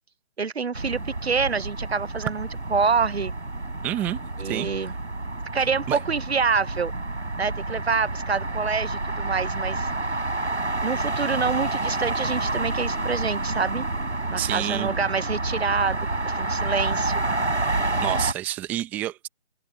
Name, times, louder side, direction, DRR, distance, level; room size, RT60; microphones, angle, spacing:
voice 1, 0.4-3.3 4.4-4.9 5.5-6.9 7.4-9.9 10.8-13.9 14.3-16.1 16.3-17.3, right 5 dB, 65° right, 0.8 m, -26 dB
sound 1, 0.7-18.3, right 2 dB, 80° right, 7.4 m, -29 dB
voice 2, 3.8-5.0 5.9-6.0 14.4-14.9 18.0-19.3, right 13 dB, 5° right, 1.0 m, -29 dB
figure-of-eight pair, 155°, 34 cm